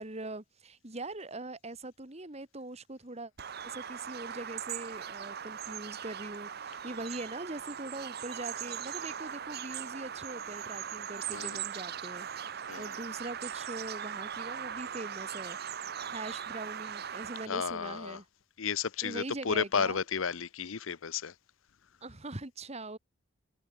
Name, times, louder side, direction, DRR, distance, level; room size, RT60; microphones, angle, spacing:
voice 1, 0.0-3.3 3.6-12.3 12.5-18.2 19.0-20.0 22.0-23.0, right 2 dB, 30° right, 1.9 m, -42 dB
Bird vocalization bird call bird song, 3.4-17.5, right 8 dB, 50° right, 0.8 m, -40 dB
voice 2, 11.3-11.6 12.7-12.9 17.5-18.2 18.6-21.3, left 6 dB, 80° left, 0.7 m, -33 dB
head